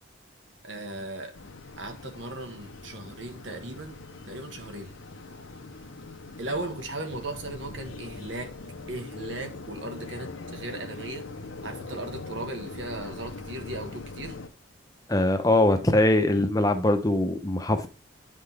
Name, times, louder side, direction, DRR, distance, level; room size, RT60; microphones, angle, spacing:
voice 1, 0.6-1.3 1.8-4.0 4.3-4.9 6.4-8.5 8.9-11.4 11.6-14.4, right 2 dB, 70° right, 1.6 m, -37 dB
sound 1, 1.3-14.5, left 3 dB, 90° left, 0.8 m, -42 dB
voice 2, 15.1-17.9, left 1 dB, 20° left, 0.7 m, -22 dB
9.0 x 5.7 x 3.4 m
head